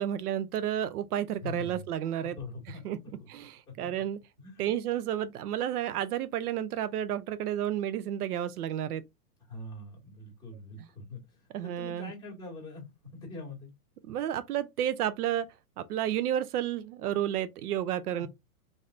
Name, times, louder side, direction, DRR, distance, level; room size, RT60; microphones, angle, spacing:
voice 1, 0.0-2.4 2.8-3.0 3.3-4.2 4.6-9.0 11.5-12.1 14.1-15.5 15.8-18.3, right 11 dB, 80° right, 0.5 m, -31 dB
voice 2, 1.4-1.9 2.2-2.8 3.1-3.3 3.7-3.8 4.4-4.7 9.5-12.9 13.3-13.7 18.2-18.3, left 2 dB, 10° left, 1.5 m, -43 dB
3.3 x 2.7 x 2.4 m
hypercardioid pair, 145°, 45 cm